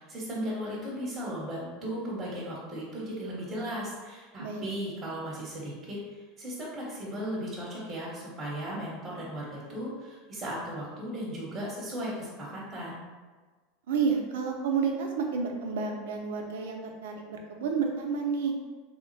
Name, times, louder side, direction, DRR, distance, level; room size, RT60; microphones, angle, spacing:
voice 1, 0.0-13.0, equal, 20° right, -6 dB, 1.0 m, -36 dB
voice 2, 13.9-18.5, right 5 dB, 90° right, 2 dB, 0.6 m, -30 dB
3.5 x 2.1 x 3.9 m, 1.4 s
supercardioid pair, 130°, 0 cm